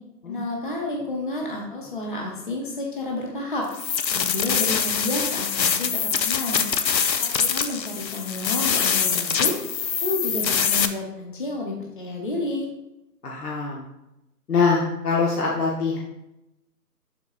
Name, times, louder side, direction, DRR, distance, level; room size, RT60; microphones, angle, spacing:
voice 1, 0.3-3.7 4.1-6.6 7.2-9.6 10.0-12.7, left 2 dB, 30° left, -1 dB, 0.7 m, -30 dB
sound 1, 3.7-10.9, left 7 dB, 85° left, 0.8 m, -24 dB
voice 2, 13.2-13.8 14.5-16.0, left 4 dB, 65° left, -4 dB, 1.4 m, -23 dB
11.5 x 4.2 x 2.4 m, 0.92 s
hypercardioid pair, 175°, 49 cm